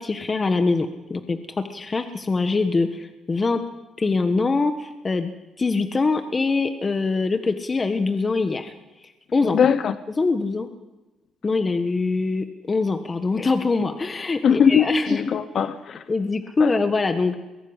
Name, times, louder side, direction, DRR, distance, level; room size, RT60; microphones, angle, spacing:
voice 1, 0.0-3.6 4.0-5.3 5.6-8.7 9.3-9.6 10.2-10.7 11.4-15.2 16.1-17.3, left 3 dB, 30° left, 1.5 m, -23 dB
voice 2, 9.4-10.0 14.4-16.0 16.6-16.7, left 7 dB, 60° left, 0.9 m, -20 dB
22.5 x 12.5 x 10.0 m
cardioid pair, 90°, 0 cm